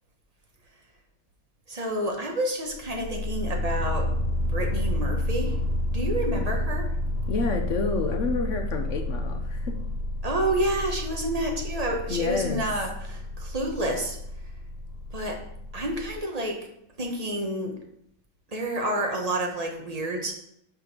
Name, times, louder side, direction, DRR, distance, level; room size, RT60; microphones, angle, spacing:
voice 1, 1.7-4.1 4.5-5.6 5.9-6.9 10.2-14.2 15.1-15.4 15.7-16.6 17.0-17.8 18.5-20.3, right 1 dB, 25° right, 1 dB, 1.0 m, -29 dB
sound 1, 2.7-16.2, left 1 dB, 40° left, 0.9 m, -30 dB
voice 2, 7.3-9.8 12.1-12.6, left 4 dB, 70° left, 4 dB, 0.7 m, -29 dB
6.0 x 5.2 x 5.9 m, 0.75 s
omnidirectional pair, 2.1 m